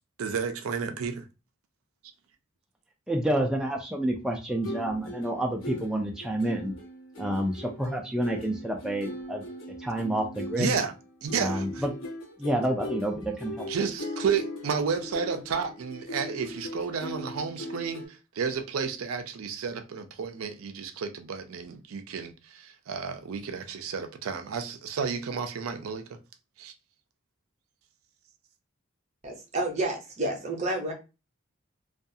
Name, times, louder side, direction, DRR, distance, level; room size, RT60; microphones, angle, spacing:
voice 1, 0.2-1.2 10.6-10.9 11.2-11.8 13.7-26.2 26.6-26.7, right 6 dB, 90° right, 0.4 m, -32 dB
voice 2, 3.1-6.7 7.2-9.4 9.8-10.7 11.4-11.9 12.4-13.7, right 1 dB, 5° right, 0.3 m, -29 dB
sound 1, 4.5-18.1, equal, 75° left, 0.9 m, -39 dB
voice 3, 29.2-30.9, right 2 dB, 35° right, 0.7 m, -30 dB
2.3 x 2.3 x 2.6 m
head